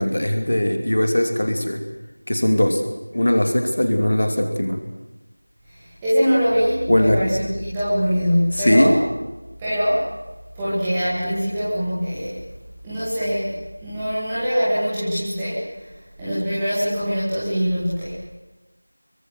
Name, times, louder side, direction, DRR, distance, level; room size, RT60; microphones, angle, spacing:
voice 1, 0.0-1.8 2.3-2.9 3.1-4.8 6.9-7.2 8.5-8.9, left 1 dB, 25° left, 5 dB, 2.9 m, -19 dB
voice 2, 6.0-9.0 9.6-10.1 10.6-12.4 12.8-13.5 13.8-15.6 16.2-18.2, equal, 5° right, -13 dB, 2.1 m, -22 dB
24.5 x 23.5 x 7.8 m, 1.1 s
figure-of-eight pair, 175°, 0 cm